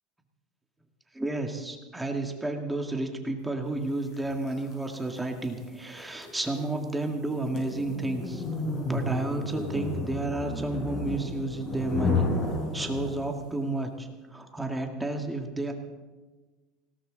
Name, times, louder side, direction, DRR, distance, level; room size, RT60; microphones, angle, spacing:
voice 1, 1.1-8.4 8.9-12.3 12.7-15.7, right 2 dB, 5° right, 3 dB, 1.9 m, -31 dB
sound 1, 4.1-13.5, left 3 dB, 45° left, 6.1 m, -33 dB
19.5 x 17.5 x 4.0 m, 1.3 s
cardioid pair, 145°, 0 cm